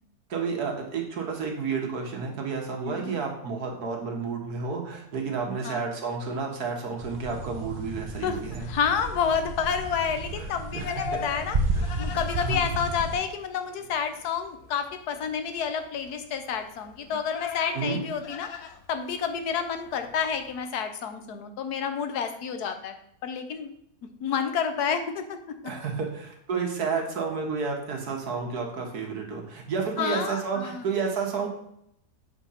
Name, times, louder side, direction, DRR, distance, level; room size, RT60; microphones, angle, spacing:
voice 1, 0.3-8.7 10.7-11.2 11.8-11.9 12.4-12.7 17.7-18.0 25.6-31.5, right 5 dB, 80° right, 1 dB, 1.9 m, -31 dB
sound 1, 7.0-13.2, right 2 dB, 40° right, 0.9 m, -32 dB
voice 2, 8.2-11.6 12.0-18.5 18.9-23.0 23.2-23.7 24.2-25.4 30.0-30.9, left 7 dB, 90° left, 8 dB, 1.4 m, -29 dB
Livestock farm animals working animals, 9.7-20.7, left 7 dB, 75° left, 1.1 m, -42 dB
8.2 x 3.7 x 5.7 m, 0.74 s
omnidirectional pair, 1.6 m